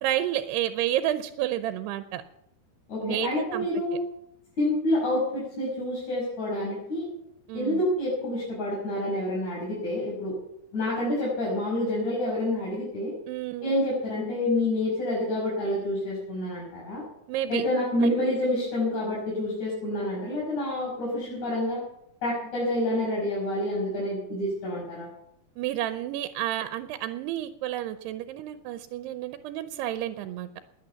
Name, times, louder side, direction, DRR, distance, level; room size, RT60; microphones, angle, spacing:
voice 1, 0.0-2.2 3.0-3.7 7.5-7.8 13.3-13.7 17.3-17.6 25.6-30.5, right 13 dB, 85° right, 10 dB, 2.8 m, -30 dB
voice 2, 2.9-4.0 4.6-7.1 7.5-10.3 10.7-13.1 13.6-17.0 17.5-21.8 22.2-25.1, left 1 dB, 45° left, -6 dB, 7.3 m, -28 dB
21.0 x 9.0 x 7.0 m, 0.78 s
omnidirectional pair, 4.7 m